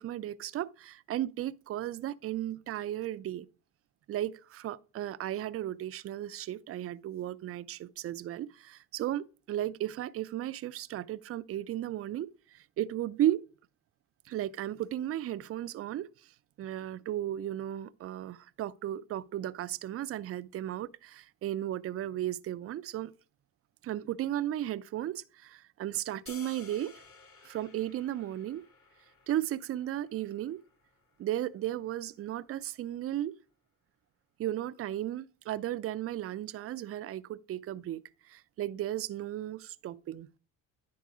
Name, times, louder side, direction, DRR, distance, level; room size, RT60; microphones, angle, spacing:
voice 1, 0.0-3.5 4.1-13.4 14.3-16.3 16.6-23.1 23.8-26.9 27.4-28.6 29.3-30.6 31.2-33.4 34.4-38.0 38.3-40.3, right 12 dB, 45° right, 0.4 m, -35 dB
sound 1, 26.3-32.4, left 4 dB, 45° left, 2.0 m, -55 dB
10.5 x 4.6 x 4.8 m
cardioid pair, 120°, 32 cm